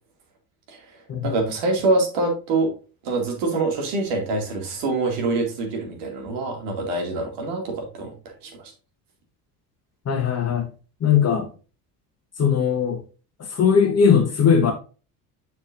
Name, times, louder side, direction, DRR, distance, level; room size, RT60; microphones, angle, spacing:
voice 1, 1.2-2.7 3.0-8.1 8.4-8.7, right 3 dB, 60° right, 2.5 m, -25 dB
voice 2, 10.1-10.7 11.0-11.5 12.4-13.0 13.5-14.7, left 7 dB, 30° left, 1.2 m, -19 dB
6.9 x 6.4 x 2.6 m
figure-of-eight pair, 65°, 47 cm